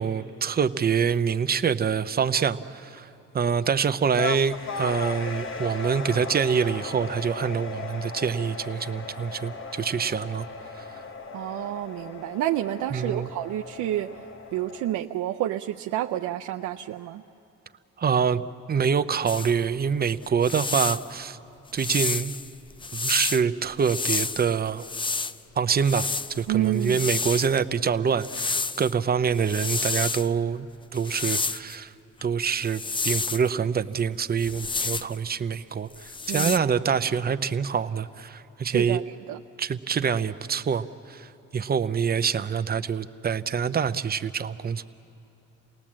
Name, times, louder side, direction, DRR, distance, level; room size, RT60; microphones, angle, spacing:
voice 1, 0.0-3.1 3.3-10.5 12.9-13.3 18.0-21.4 21.7-22.3 22.9-24.9 25.6-30.7 30.9-31.9 32.2-39.0 39.6-41.3 41.5-44.8, right 6 dB, 30° right, 11 dB, 0.7 m, -25 dB
sound 1, 4.2-14.9, left 4 dB, 45° left, 1.2 m, -37 dB
voice 2, 11.3-14.1 14.5-17.2 26.5-27.0 36.3-36.7 38.6-39.4, right 13 dB, 90° right, 3 dB, 0.6 m, -29 dB
sound 2, 19.3-19.5 20.2-21.1 21.8-23.4 23.8-25.3 25.8-27.6 28.2-28.9 29.3-30.3 30.9-31.7 32.6-33.5 34.4-35.2 35.9-36.6, left 4 dB, 15° left, 0.4 m, -30 dB
28.0 x 18.5 x 7.5 m, 3.0 s
cardioid pair, 90°, 30 cm